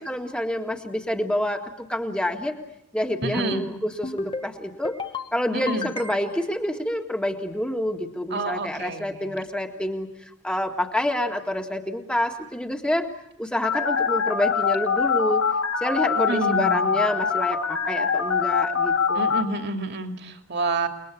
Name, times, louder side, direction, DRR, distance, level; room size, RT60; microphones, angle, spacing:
voice 1, 0.1-2.5 2.9-4.9 5.3-13.1 13.4-15.4 15.8-19.3, left 1 dB, 5° left, 3 dB, 1.8 m, -28 dB
sound 1, 3.2-3.7 4.0-4.5 4.8-5.3 5.7-6.4, left 3 dB, 25° left, 1.1 m, -32 dB
voice 2, 3.2-3.6 5.5-5.9 8.3-9.4 16.2-16.9 19.1-20.9, right 3 dB, 50° right, 5 dB, 2.6 m, -29 dB
Telephone, 13.6-19.4, left 6 dB, 60° left, 3.2 m, -23 dB
29.5 x 21.0 x 8.4 m, 0.80 s
head